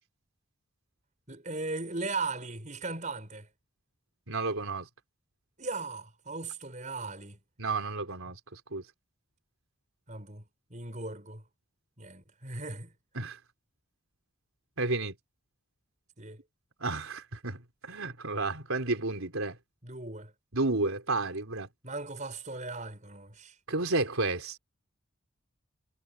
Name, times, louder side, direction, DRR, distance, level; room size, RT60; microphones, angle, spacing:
voice 1, 1.3-3.5 5.6-7.4 10.1-10.4 10.7-11.4 12.0-12.9 16.2-16.4 19.8-20.3 21.8-23.6, right 3 dB, 35° right, 5.7 m, -38 dB
voice 2, 4.3-4.9 7.6-8.8 13.2-13.4 14.8-15.1 16.8-17.6 17.9-19.5 20.5-21.7 23.7-24.6, right 3 dB, 75° right, 3.6 m, -31 dB
head